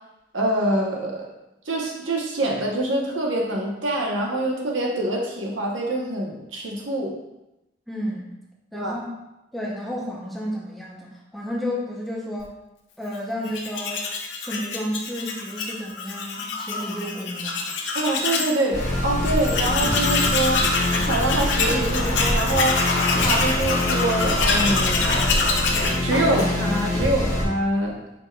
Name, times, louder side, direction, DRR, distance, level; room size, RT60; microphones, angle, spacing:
voice 1, 0.3-1.3 1.7-7.2 8.7-9.0 17.9-20.6 21.0-22.8 23.2-25.1 26.0-28.0, right 1 dB, 85° right, -1 dB, 0.9 m, -25 dB
voice 2, 7.9-8.3 8.7-9.1 9.5-12.5 13.0-14.1 14.4-17.6, equal, ahead, -4 dB, 0.7 m, -31 dB
Tools, 13.4-18.6 18.9-19.0 19.2-26.8, left 4 dB, 70° left, 0.6 m, -26 dB
sound 1, 18.7-27.5, left 1 dB, 40° left, 1.4 m, -25 dB
5.2 x 4.5 x 2.3 m, 0.93 s
head